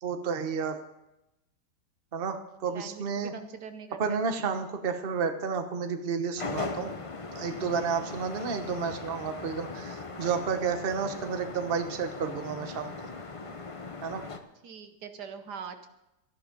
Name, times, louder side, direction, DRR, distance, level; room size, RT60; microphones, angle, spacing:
voice 1, 0.0-0.8 2.1-3.3 4.0-6.9 7.3-12.9 14.0-14.2, right 6 dB, 35° right, 7 dB, 1.1 m, -31 dB
voice 2, 2.6-4.2 8.4-8.6 14.6-15.9, right 6 dB, 70° right, 8 dB, 1.4 m, -43 dB
sound 1, 6.4-14.4, left 4 dB, 35° left, 0.5 m, -39 dB
13.5 x 11.0 x 5.3 m, 0.91 s
omnidirectional pair, 1.9 m